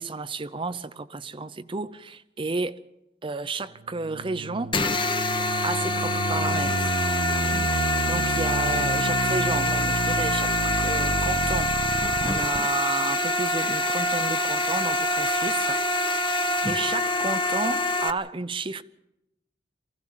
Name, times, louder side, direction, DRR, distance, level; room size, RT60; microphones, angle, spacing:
voice 1, 0.0-2.8 3.2-4.7 5.6-7.0 7.8-15.8 16.7-18.8, right 3 dB, 30° right, 0.6 m, -32 dB
sound 1, 3.8-12.6, right 2 dB, 65° right, 0.7 m, -30 dB
sound 2, 4.7-18.1, left 1 dB, 25° left, 0.9 m, -25 dB
23.5 x 16.0 x 7.3 m
head